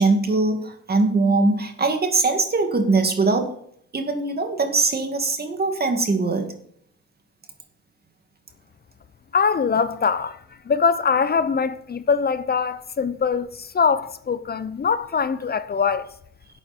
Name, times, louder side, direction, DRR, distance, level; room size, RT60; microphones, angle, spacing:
voice 1, 0.0-3.5 3.9-6.5, right 3 dB, 30° right, 2.2 m, -21 dB
voice 2, 9.3-16.1, left 5 dB, 30° left, 0.6 m, -23 dB
12.0 x 8.1 x 4.3 m
cardioid pair, 90°, 30 cm